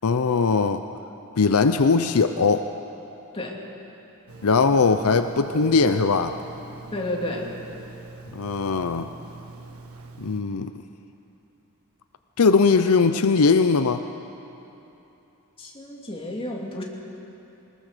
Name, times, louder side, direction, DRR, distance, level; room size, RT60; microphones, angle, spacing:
voice 1, 0.0-0.8 1.4-2.7 4.4-6.4 8.3-9.1 10.2-10.7 12.4-14.0, left 4 dB, 75° left, 9 dB, 0.6 m, -20 dB
Telephone, 4.3-10.4, right 3 dB, 70° right, 1.6 m, -40 dB
voice 2, 6.9-7.6 15.6-16.8, left 1 dB, 25° left, -1 dB, 2.7 m, -31 dB
20.5 x 20.0 x 6.7 m, 2.9 s
head